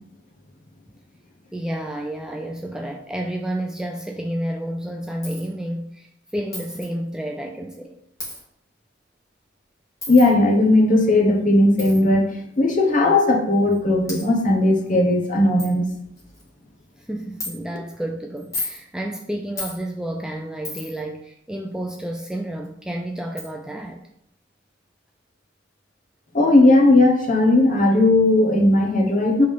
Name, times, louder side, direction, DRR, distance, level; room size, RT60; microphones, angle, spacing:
voice 1, 1.5-7.9 17.1-24.0, right 1 dB, 5° right, 2 dB, 0.4 m, -30 dB
Coin (dropping), 5.2-5.5 6.5-6.9 8.2-8.4 10.0-10.3 11.8-12.0 12.9-13.0 13.7-13.8 14.1-14.2 14.9-15.0 15.2-15.3 15.6-15.7 16.2-16.5 17.4-17.5 18.4-18.8 19.6-19.8 20.6-21.0 22.6-22.7 23.4-23.5, left 2 dB, 15° left, 1.9 m, -32 dB
voice 2, 10.1-12.3 12.6-15.8 26.3-29.5, left 2 dB, 45° left, 1 dB, 1.2 m, -17 dB
5.5 x 3.8 x 5.1 m, 0.73 s
head